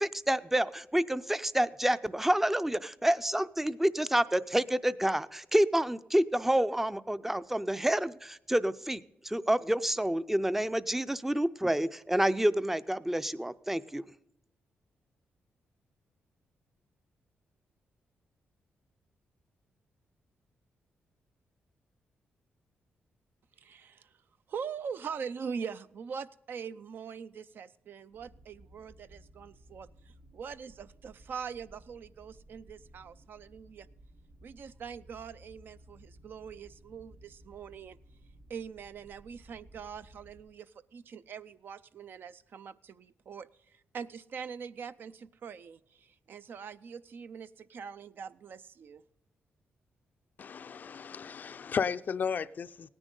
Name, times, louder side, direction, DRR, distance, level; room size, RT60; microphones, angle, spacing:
voice 1, 0.0-14.0, right 1 dB, 5° right, 15 dB, 0.5 m, -28 dB
voice 2, 23.6-24.1 24.5-29.9 30.3-33.9 34.4-38.0 38.5-49.0, right 6 dB, 60° right, 13 dB, 0.5 m, -43 dB
sound 1, 28.1-40.4, right 1 dB, 90° right, 3.2 m, -57 dB
voice 3, 50.4-52.9, left 6 dB, 50° left, 13 dB, 0.4 m, -34 dB
17.5 x 9.9 x 3.8 m, 0.86 s
cardioid pair, 100°, 4 cm